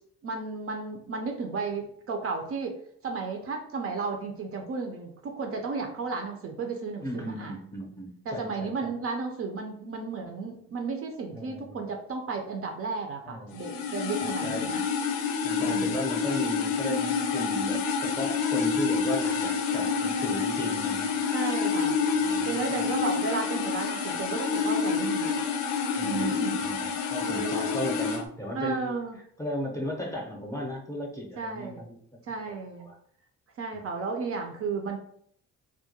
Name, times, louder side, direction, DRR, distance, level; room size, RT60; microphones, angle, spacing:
voice 1, 0.2-2.7 3.0-7.6 8.3-14.9 15.6-16.0 21.3-22.0 22.4-25.4 26.0-26.7 27.2-27.8 28.5-29.2 31.4-31.8 32.2-32.9 33.6-35.0, right 4 dB, 50° right, 3 dB, 0.5 m, -33 dB
voice 2, 7.0-8.9 11.3-11.8 13.2-13.6 14.2-14.7 15.4-21.2 22.1-22.8 26.0-26.3 26.6-28.9 29.4-32.0 32.8-33.0, equal, 10° left, -1 dB, 0.6 m, -36 dB
sound 1, 13.5-28.2, left 5 dB, 85° left, 0.5 m, -28 dB
2.3 x 2.1 x 2.8 m, 0.64 s
cardioid pair, 90°, 30 cm